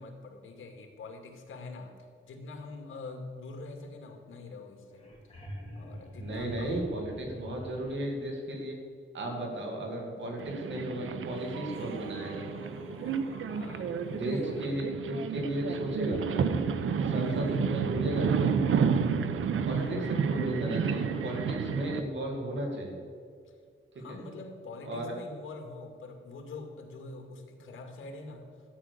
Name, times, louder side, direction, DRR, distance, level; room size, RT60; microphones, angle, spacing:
voice 1, 0.0-1.9 2.2-5.3 5.7-6.8 13.4-14.8 17.2-18.0 19.6-20.0 23.5-23.6 23.9-28.4, left 2 dB, 80° left, 3 dB, 2.3 m, -44 dB
sound 1, 4.6-4.7 4.8-8.0 10.5-10.6 11.2-14.3 16.9-17.0, equal, 25° left, 3.3 m, -45 dB
voice 2, 6.2-8.8 9.1-12.4 14.1-16.5 17.0-18.6 19.6-23.0 24.1-24.2 24.8-25.1, right 1 dB, 65° right, 1 dB, 2.7 m, -35 dB
sound 2, 10.4-22.0, right 6 dB, 80° right, 0.9 m, -31 dB
13.0 x 9.0 x 6.8 m, 2.1 s
wide cardioid pair, 130°, 21 cm